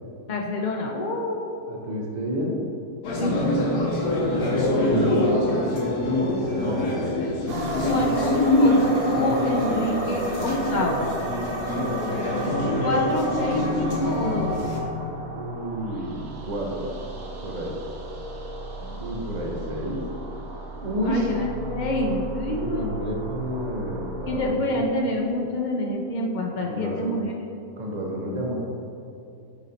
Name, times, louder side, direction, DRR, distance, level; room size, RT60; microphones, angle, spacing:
voice 1, 0.3-1.6 3.2-3.8 4.5-5.8 7.9-11.1 12.8-14.5 18.8-19.0 21.0-21.4 21.7-23.1 24.3-27.3, left 1 dB, 70° left, 0 dB, 0.4 m, -27 dB
voice 2, 1.7-2.5 6.5-8.1 15.3-16.9 17.4-17.8 19.0-20.0 20.8-21.3 22.5-24.8 26.6-27.2 27.8-28.5, equal, 40° right, -1 dB, 0.7 m, -31 dB
sound 1, 3.0-14.8, left 1 dB, 85° left, 1.5 m, -25 dB
sound 2, 7.5-24.5, right 1 dB, 70° right, 1.3 m, -34 dB
8.1 x 4.1 x 4.1 m, 2.7 s
omnidirectional pair, 1.7 m